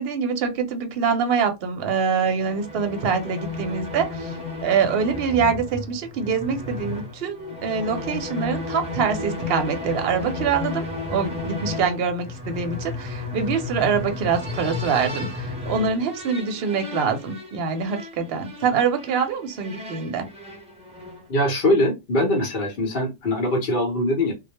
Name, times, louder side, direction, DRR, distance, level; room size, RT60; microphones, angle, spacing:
voice 1, 0.0-4.3 4.6-10.8 11.1-20.3, right 6 dB, 60° right, 0.8 m, -24 dB
sound 1, 2.3-21.3, left 3 dB, 5° right, 0.6 m, -33 dB
voice 2, 21.3-24.3, left 1 dB, 55° left, 0.9 m, -22 dB
2.2 x 2.1 x 2.8 m
omnidirectional pair, 1.2 m